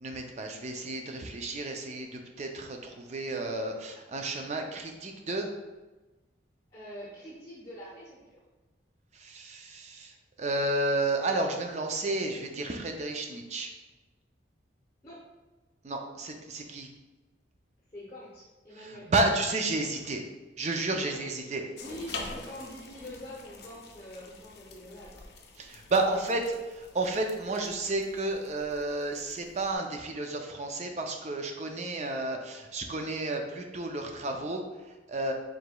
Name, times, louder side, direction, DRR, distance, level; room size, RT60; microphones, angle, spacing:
voice 1, 0.0-5.5 9.1-13.7 15.8-16.9 18.7-20.2 20.6-21.6 25.6-26.4 26.8-35.3, right 2 dB, 35° right, 3 dB, 0.4 m, -32 dB
voice 2, 6.7-8.4 15.0-15.2 17.9-19.1 20.9-25.2 26.0-26.5, equal, 20° left, -6 dB, 0.8 m, -45 dB
sound 1, 21.8-29.7, left 3 dB, 55° left, 0.5 m, -46 dB
4.8 x 3.9 x 2.3 m, 1.2 s
head